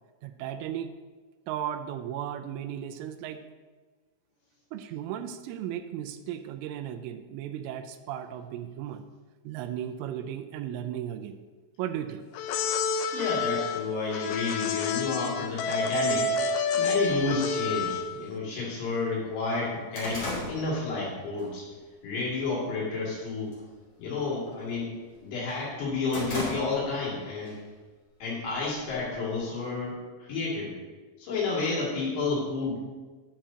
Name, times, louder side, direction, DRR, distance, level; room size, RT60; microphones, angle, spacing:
voice 1, 0.2-0.9 1.5-3.4 4.7-9.0 9.4-11.4 11.8-12.2, right 10 dB, 85° right, 9 dB, 3.1 m, -35 dB
sound 1, 12.3-18.2, left 4 dB, 85° left, 3.0 m, -29 dB
voice 2, 13.1-21.7 22.0-23.6 24.0-25.0 25.2-27.6 28.2-30.7 31.2-32.8, left 3 dB, 65° left, -6 dB, 4.5 m, -31 dB
sound 2, 17.1-17.2 18.1-18.2 18.6-18.7 19.1-21.5 21.9-22.2 22.6-23.1 23.4-23.7 24.0-25.2 25.6-27.1 27.5-27.6 28.5-29.4, left 1 dB, 35° left, 2.7 m, -37 dB
10.5 x 9.6 x 2.8 m, 1.3 s
omnidirectional pair, 5.6 m